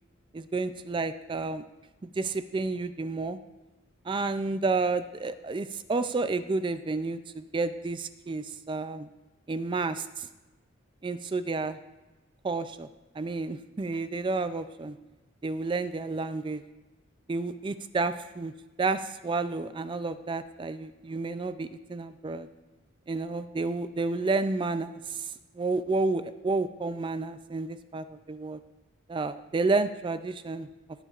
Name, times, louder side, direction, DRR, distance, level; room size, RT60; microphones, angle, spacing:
voice 1, 0.3-1.6 2.0-3.4 4.1-9.1 9.5-10.3 11.0-11.8 12.4-12.9 13.2-15.0 15.4-16.6 17.3-18.5 18.8-22.5 23.1-25.3 25.6-28.6 29.1-30.7, right 3 dB, 25° right, 11 dB, 0.3 m, -30 dB
19.0 x 7.0 x 2.4 m, 1.1 s
head